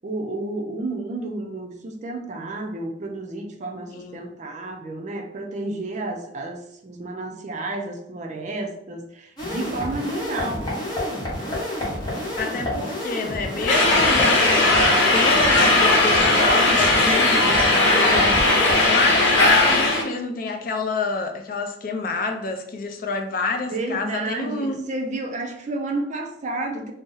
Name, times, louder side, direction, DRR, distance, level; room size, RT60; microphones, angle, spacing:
voice 1, 0.0-10.7 23.7-26.9, right 2 dB, 40° right, 3 dB, 0.4 m, -31 dB
voice 2, 3.9-4.2 12.4-24.8, left 3 dB, 50° left, 5 dB, 0.4 m, -28 dB
sound 1, 9.4-18.9, left 1 dB, 25° left, 1.0 m, -29 dB
sound 2, 13.7-20.0, left 2 dB, 85° left, 0.8 m, -18 dB
2.6 x 2.0 x 3.7 m, 0.76 s
head